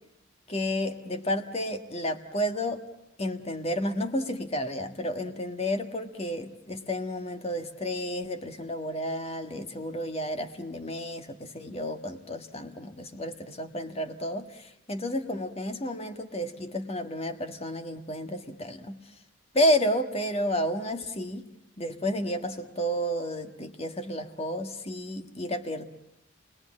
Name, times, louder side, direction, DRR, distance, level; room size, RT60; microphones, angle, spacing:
voice 1, 0.5-2.8 3.2-14.5 14.9-19.0 19.5-21.5 21.8-25.9, equal, 30° left, 7 dB, 1.5 m, -31 dB
28.0 x 22.0 x 8.6 m, 0.79 s
head